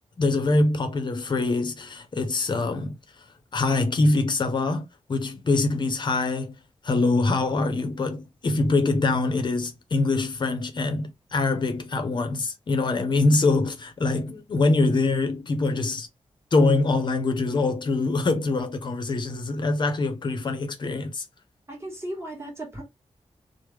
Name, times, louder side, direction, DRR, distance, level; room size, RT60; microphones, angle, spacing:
voice 1, 0.2-3.0 3.5-6.6 6.8-16.1 16.5-21.2, left 3 dB, 45° left, 0.6 m, -24 dB
voice 2, 21.7-22.8, right 1 dB, 25° right, 1.4 m, -36 dB
3.2 x 2.1 x 3.2 m
wide cardioid pair, 165°, 11 cm